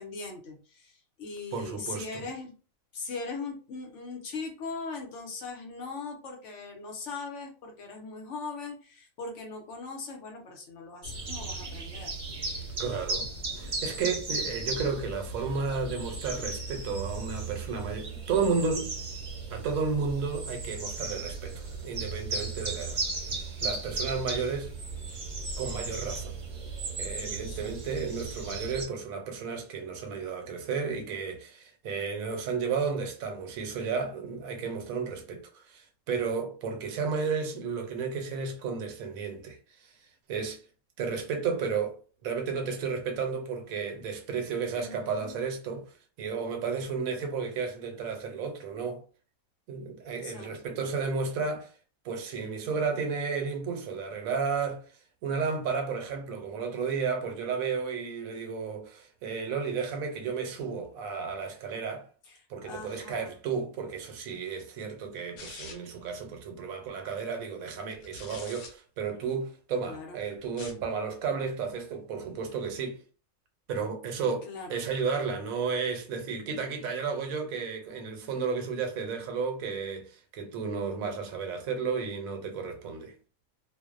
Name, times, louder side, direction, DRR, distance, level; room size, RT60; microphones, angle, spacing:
voice 1, 0.0-2.5 2.9-12.1 27.5-27.8 44.8-45.3 50.1-50.5 62.3-62.4 62.6-63.3 69.9-70.2 74.4-74.8, left 4 dB, 65° left, 0.9 m, -40 dB
voice 2, 1.5-2.3 12.8-13.3 13.5-19.0 19.5-24.7 25.6-26.4 27.0-39.9 40.3-40.6 41.0-49.0 49.7-51.7 52.0-54.8 55.2-62.0 62.5-73.0 73.7-83.1, right 5 dB, 80° right, 1.0 m, -33 dB
sound 1, 11.0-28.9, right 3 dB, 45° right, 0.6 m, -36 dB
sound 2, 65.4-66.0 67.9-68.7 70.4-70.9, left 4 dB, 85° left, 1.1 m, -44 dB
2.5 x 2.0 x 2.4 m
omnidirectional pair, 1.5 m